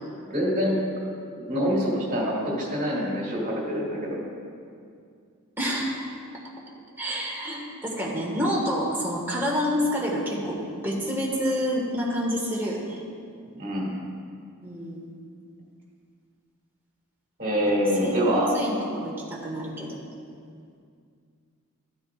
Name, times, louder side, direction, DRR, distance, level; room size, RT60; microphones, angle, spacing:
voice 1, 0.3-0.8 1.4-4.2 13.5-13.9 17.4-18.5, equal, 40° right, -4 dB, 2.5 m, -25 dB
voice 2, 5.6-5.9 7.0-13.0 14.6-15.0 18.0-20.0, equal, 10° right, -5 dB, 1.7 m, -28 dB
13.0 x 9.5 x 2.5 m, 2.3 s
head